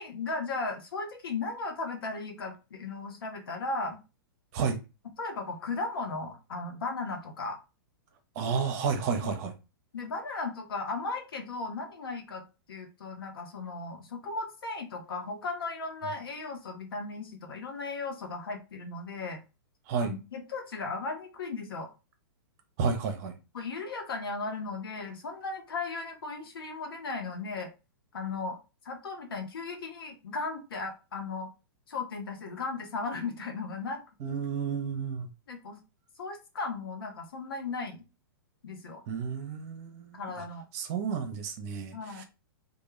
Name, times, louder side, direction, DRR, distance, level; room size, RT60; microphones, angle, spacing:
voice 1, 0.0-4.0 5.2-7.6 9.9-12.4 12.7-19.4 20.0-21.9 23.5-27.7 28.1-28.6 28.8-31.5 31.9-34.0 35.5-35.8 36.2-38.0 38.6-39.0 40.1-40.6 41.9-42.2, left 3 dB, 75° left, 0.7 m, -36 dB
voice 2, 8.4-9.5 19.9-20.1 22.8-23.4 34.2-35.3 39.1-40.4 40.7-42.2, right 6 dB, 45° right, 0.6 m, -31 dB
2.2 x 2.2 x 3.0 m
hypercardioid pair, 120°, 12 cm